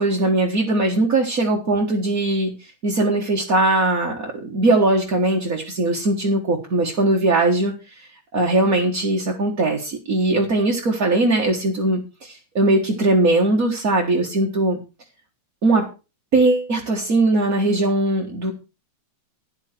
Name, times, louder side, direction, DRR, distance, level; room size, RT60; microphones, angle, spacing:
voice 1, 0.0-14.8 15.6-15.9 16.3-18.5, right 2 dB, 35° right, -1 dB, 1.4 m, -20 dB
12.5 x 10.0 x 4.5 m, 0.31 s
omnidirectional pair, 3.9 m